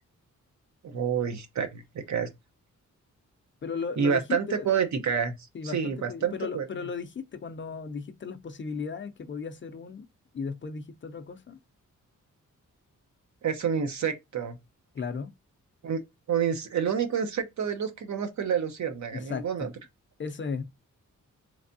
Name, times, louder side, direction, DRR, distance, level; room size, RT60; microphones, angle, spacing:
voice 1, 0.8-2.3 4.0-5.4 5.6-6.7 13.4-14.6 15.8-16.0 16.3-19.7, right 7 dB, 65° right, 0.8 m, -28 dB
voice 2, 3.6-4.7 5.5-10.0 10.3-11.6 14.9-15.3 19.1-19.7 20.2-20.6, left 5 dB, 40° left, 0.5 m, -36 dB
3.3 x 3.3 x 2.6 m
wide cardioid pair, 150°, 31 cm